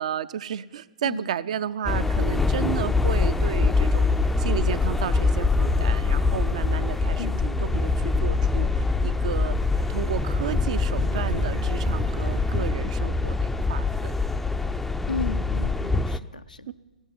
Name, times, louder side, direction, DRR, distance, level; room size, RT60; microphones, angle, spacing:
voice 1, 0.0-9.5 9.9-14.2 16.3-16.7, right 9 dB, 60° right, 14 dB, 0.5 m, -32 dB
sound 1, 1.9-16.2, left 3 dB, 5° left, 0.4 m, -24 dB
sound 2, 3.1-12.7, right 3 dB, 85° right, 1.5 m, -43 dB
voice 2, 6.9-7.4 15.1-16.7, left 4 dB, 85° left, 11 dB, 0.5 m, -34 dB
13.5 x 8.1 x 9.7 m, 1.2 s
figure-of-eight pair, 110°, 4 cm